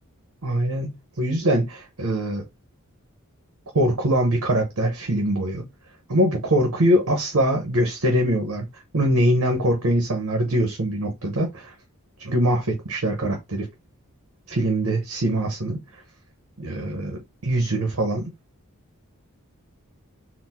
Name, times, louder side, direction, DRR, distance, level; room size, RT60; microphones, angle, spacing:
voice 1, 0.4-2.4 3.7-5.7 6.1-8.7 8.9-11.7 12.2-13.7 14.5-16.0 16.6-18.3, right 1 dB, 75° right, 1.0 m, -23 dB
4.2 x 2.1 x 4.2 m
head